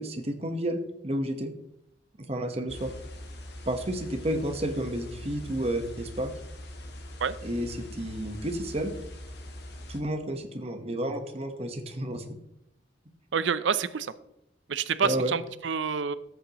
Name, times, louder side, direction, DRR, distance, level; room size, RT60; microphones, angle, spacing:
voice 1, 0.0-1.5 2.3-2.9 3.7-6.3 7.4-8.9 9.9-12.2 15.0-15.3, right 1 dB, 35° right, 6 dB, 1.2 m, -31 dB
sound 1, 2.7-10.0, left 1 dB, 60° left, 1.5 m, -42 dB
voice 2, 13.3-14.1 14.7-16.2, right 6 dB, 80° right, 15 dB, 0.6 m, -28 dB
13.5 x 8.2 x 3.0 m, 0.80 s
head